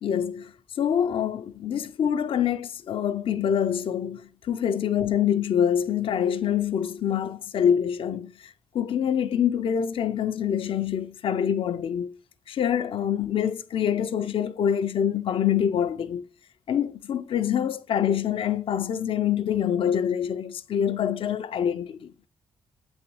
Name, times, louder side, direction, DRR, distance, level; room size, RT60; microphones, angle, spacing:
voice 1, 0.0-12.2 12.5-16.2 16.7-22.1, left 9 dB, 65° left, 0.5 m, -25 dB
7.9 x 4.0 x 3.0 m
supercardioid pair, 60°, 10 cm